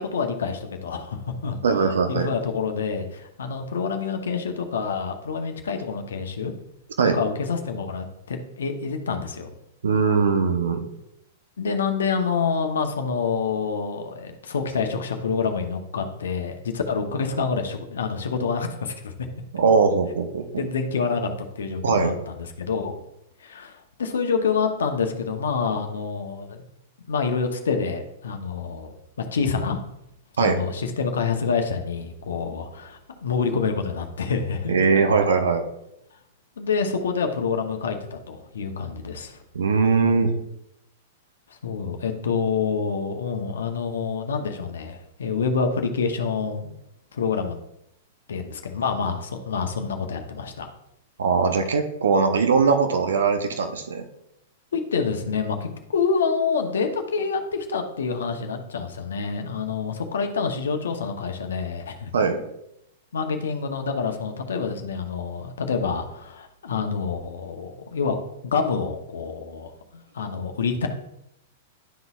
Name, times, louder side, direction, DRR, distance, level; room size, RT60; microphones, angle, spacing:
voice 1, 0.0-1.6 2.1-6.5 7.0-9.5 11.6-19.1 20.6-21.3 21.6-23.0 23.4-26.6 27.1-29.8 30.4-35.0 36.6-39.4 41.6-46.6 47.1-47.6 48.3-50.7 54.7-62.1 63.1-68.2 68.4-69.7 70.1-70.9, left 5 dB, 75° left, 5 dB, 0.8 m, -27 dB
voice 2, 1.6-2.3 7.0-7.2 9.8-10.9 19.5-20.4 21.8-22.1 30.4-30.6 34.7-35.6 39.5-40.3 51.2-54.0 62.1-62.4, right 5 dB, 75° right, 7 dB, 0.7 m, -20 dB
11.0 x 3.9 x 2.4 m, 0.80 s
hypercardioid pair, 105°, 0 cm